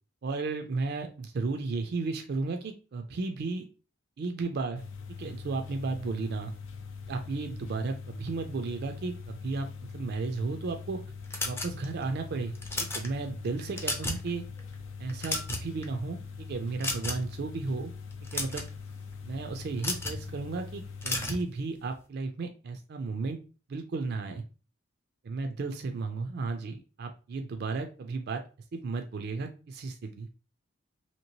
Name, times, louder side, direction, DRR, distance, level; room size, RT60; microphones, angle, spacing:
voice 1, 0.2-3.7 4.2-4.8 5.2-6.5 7.0-11.0 11.4-12.5 12.8-14.5 15.0-17.9 18.3-18.6 19.3-23.4 23.7-24.4 25.2-28.4 28.7-30.3, right 3 dB, 50° right, 6 dB, 0.4 m, -34 dB
sound 1, 4.7-21.3, left 5 dB, 70° left, 0.4 m, -43 dB
sound 2, 11.3-12.0 12.5-13.1 13.6-14.3 14.6-14.7 15.1-15.8 16.8-17.3 18.1-18.7 19.8-20.2 21.0-21.4, left 2 dB, 10° left, 0.5 m, -33 dB
2.9 x 2.8 x 2.7 m, 0.34 s
head